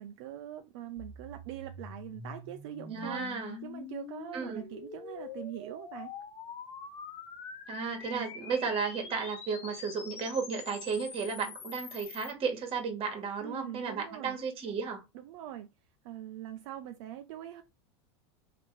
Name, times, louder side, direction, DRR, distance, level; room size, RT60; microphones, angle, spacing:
voice 1, 0.0-3.3 3.6-6.1 8.1-8.3 13.4-14.4 15.1-15.7 16.0-17.6, right 12 dB, 75° right, 0.4 m, -43 dB
sound 1, 1.0-12.3, left 5 dB, 45° left, 1.1 m, -45 dB
voice 2, 2.9-3.6 4.3-4.6 7.7-15.0, right 5 dB, 40° right, 1.3 m, -34 dB
3.4 x 2.8 x 3.2 m
supercardioid pair, 120°, 15 cm